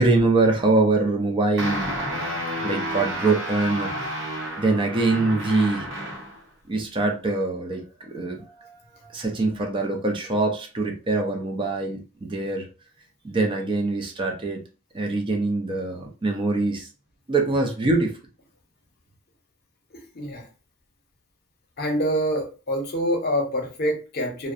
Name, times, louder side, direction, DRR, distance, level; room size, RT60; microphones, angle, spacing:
voice 1, 0.0-1.9 2.6-4.1 4.6-5.9 6.7-12.7 13.2-14.6 14.9-16.9 17.3-18.2, right 3 dB, 25° right, 2 dB, 0.4 m, -24 dB
sound 1, 1.6-6.4, equal, 80° right, 0.8 m, -31 dB
voice 2, 19.9-20.4 21.8-24.5, equal, 55° left, 2 dB, 0.7 m, -26 dB
2.5 x 2.0 x 2.4 m, 0.33 s
head